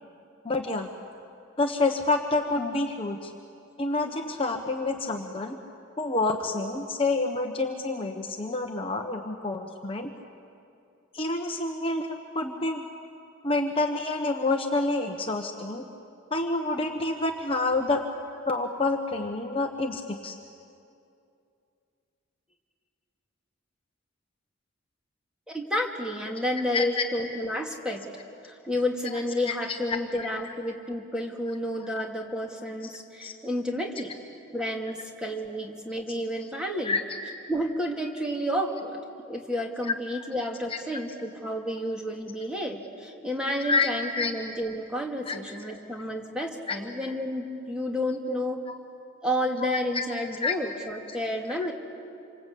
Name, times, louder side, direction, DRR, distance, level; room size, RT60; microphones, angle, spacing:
voice 1, 0.4-0.9 1.6-3.3 3.8-5.6 6.0-10.1 11.1-12.8 13.4-15.8 16.3-18.0 18.5-20.4 26.7-26.9 29.5-30.0 31.8-32.0 33.2-33.3 36.8-37.0 39.9-40.0 40.7-40.8 43.6-43.9 44.2-44.3 45.3-45.4 46.7-46.8 48.3-48.4 48.7-48.8 49.6-50.1 50.4-50.5, left 3 dB, 25° left, 3 dB, 1.1 m, -28 dB
voice 2, 25.5-28.0 28.4-34.1 34.5-37.0 37.5-39.0 39.3-48.7 49.2-51.7, equal, 5° right, 0 dB, 2.3 m, -31 dB
28.0 x 25.5 x 8.5 m, 2.6 s
head